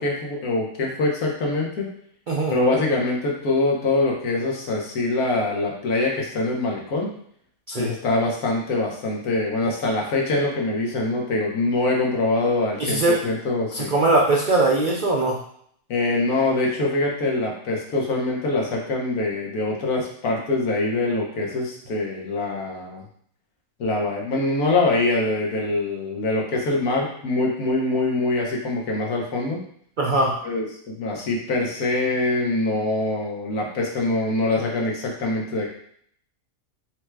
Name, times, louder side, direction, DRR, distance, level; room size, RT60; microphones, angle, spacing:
voice 1, 0.0-1.9 2.5-7.1 7.8-14.0 15.9-23.0 23.8-29.6 30.4-30.7 31.0-35.7, left 2 dB, 85° left, -2 dB, 1.5 m, -24 dB
voice 2, 12.8-13.2 13.7-15.4 30.0-30.4, right 2 dB, 70° right, -2 dB, 0.4 m, -20 dB
4.6 x 2.2 x 4.5 m, 0.65 s
omnidirectional pair, 1.5 m